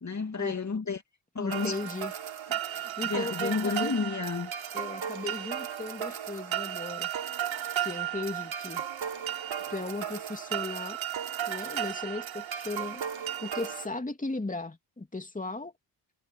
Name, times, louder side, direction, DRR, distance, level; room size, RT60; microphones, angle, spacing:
voice 1, 0.0-1.0 1.3-1.8 3.0-4.5, left 4 dB, 35° left, 2.6 m, -31 dB
voice 2, 1.4-2.1 2.7-3.9 4.7-7.1 7.8-8.8 9.7-11.0 11.5-13.0 13.4-15.7, left 2 dB, 15° left, 2.8 m, -36 dB
sound 1, 1.5-13.9, right 10 dB, 65° right, 4.0 m, -34 dB
supercardioid pair, 55°, 50 cm